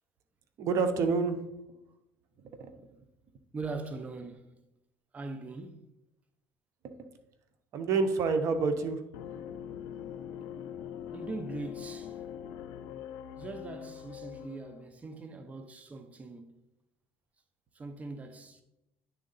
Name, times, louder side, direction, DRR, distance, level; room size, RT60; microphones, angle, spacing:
voice 1, 0.6-1.4 2.6-2.7 7.7-9.0, right 4 dB, 55° right, 0.8 m, -27 dB
voice 2, 3.5-4.6 5.1-5.8 11.1-12.2 13.4-16.6 17.7-18.6, right 3 dB, 25° right, 0.7 m, -41 dB
sound 1, 9.1-14.9, left 9 dB, 80° left, 0.5 m, -42 dB
9.5 x 3.7 x 4.0 m
supercardioid pair, 95°, 6 cm